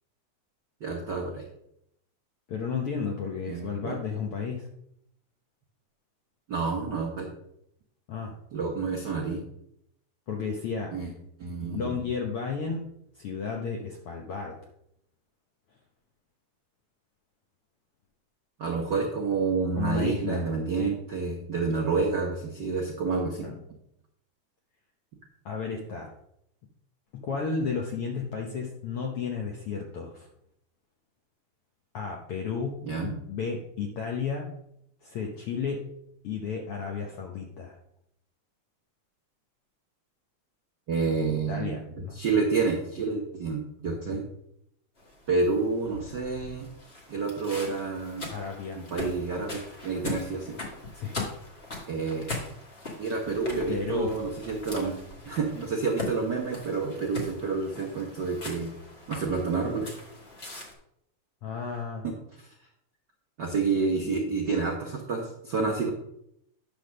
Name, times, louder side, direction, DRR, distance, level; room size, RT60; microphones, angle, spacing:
voice 1, 0.8-1.4 3.5-4.0 6.5-7.3 8.5-9.4 10.9-11.1 11.4-12.0 18.6-23.8 32.8-33.2 40.9-44.3 45.3-46.7 47.1-48.3 48.7-50.6 51.9-52.3 53.0-54.9 55.2-58.7 59.1-59.9 62.0-62.5 63.4-65.9, right 4 dB, 75° right, -1 dB, 0.9 m, -29 dB
voice 2, 2.5-4.7 8.1-8.4 10.3-10.9 11.7-12.8 13.1-14.6 19.8-20.5 20.8-20.9 23.4-23.6 25.4-26.1 27.1-30.3 31.9-34.5 35.0-35.9 36.2-37.8 41.3-42.2 48.3-48.8 50.9-51.3 53.7-54.1 61.4-62.1, left 5 dB, 75° left, 1 dB, 1.3 m, -33 dB
sound 1, 45.0-60.7, left 2 dB, 35° left, 1.0 m, -41 dB
9.8 x 3.5 x 6.3 m, 0.76 s
omnidirectional pair, 3.6 m